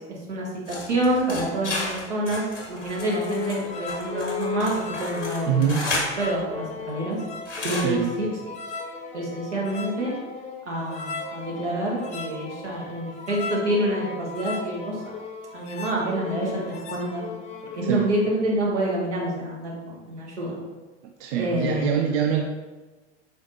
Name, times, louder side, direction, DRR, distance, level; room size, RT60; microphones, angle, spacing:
voice 1, 0.0-7.2 7.6-8.3 9.1-10.1 10.6-15.0 15.5-17.3 17.7-20.6 21.3-21.9, right 1 dB, 80° right, -4 dB, 1.4 m, -27 dB
sound 1, 0.7-6.1 7.4-7.9, left 2 dB, 90° left, 1.0 m, -32 dB
sound 2, 3.0-18.4, left 5 dB, 20° left, 0.6 m, -36 dB
voice 2, 5.5-5.8 7.8-8.1 17.8-18.1 21.2-22.4, right 8 dB, 55° right, 3 dB, 0.5 m, -24 dB
5.0 x 3.8 x 2.6 m, 1.2 s
figure-of-eight pair, 80°, 35 cm